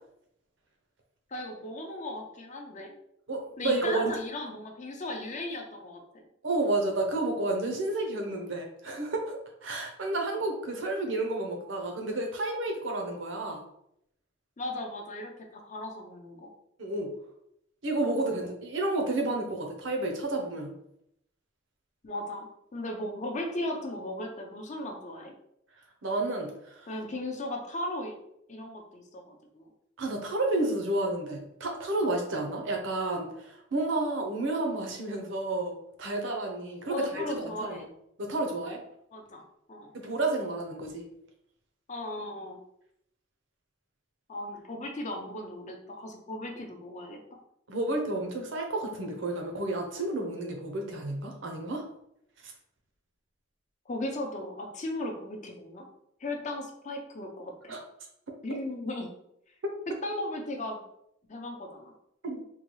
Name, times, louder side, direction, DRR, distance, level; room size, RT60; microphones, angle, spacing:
voice 1, 1.3-2.9 3.6-6.3 14.6-16.5 22.0-25.3 26.9-28.1 28.5-29.7 36.9-37.9 39.1-39.4 39.7-39.9 41.9-42.6 44.3-47.4 53.9-55.9 56.2-57.7 58.4-59.1 60.0-60.8 61.3-61.9, left 1 dB, 40° left, 3 dB, 0.6 m, -37 dB
voice 2, 3.3-4.1 6.4-13.6 16.8-17.1 17.8-20.7 26.0-26.9 30.0-37.8 38.2-38.8 39.9-41.1 47.7-51.8 52.4-52.5 57.7-57.8 59.6-59.7 62.2-62.4, right 2 dB, 70° right, 2 dB, 0.7 m, -31 dB
3.7 x 2.3 x 3.0 m, 0.76 s
head